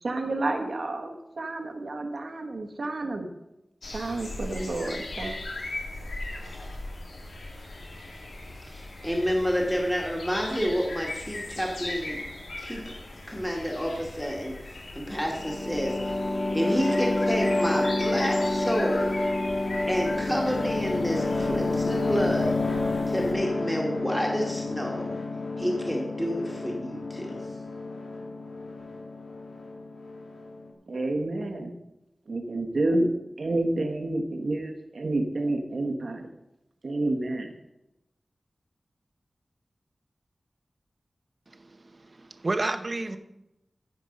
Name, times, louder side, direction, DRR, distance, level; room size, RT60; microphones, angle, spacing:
voice 1, 0.0-3.3 3.9-5.4 30.9-31.7 32.3-33.1 33.4-36.2 36.8-37.5, right 2 dB, 70° right, 4 dB, 1.3 m, -29 dB
sound 1, 3.8-23.3, left 2 dB, 90° left, 2.1 m, -39 dB
voice 2, 8.7-12.2 12.6-12.8 13.3-16.3 16.5-19.2 19.9-22.5 23.1-25.1 25.6-27.4, equal, 5° left, -1 dB, 1.9 m, -29 dB
sound 2, 15.3-30.7, left 2 dB, 70° left, 1.7 m, -29 dB
voice 3, 41.5-43.2, right 2 dB, 45° right, 9 dB, 0.9 m, -31 dB
14.5 x 5.3 x 5.3 m, 0.92 s
wide cardioid pair, 75°, 0 cm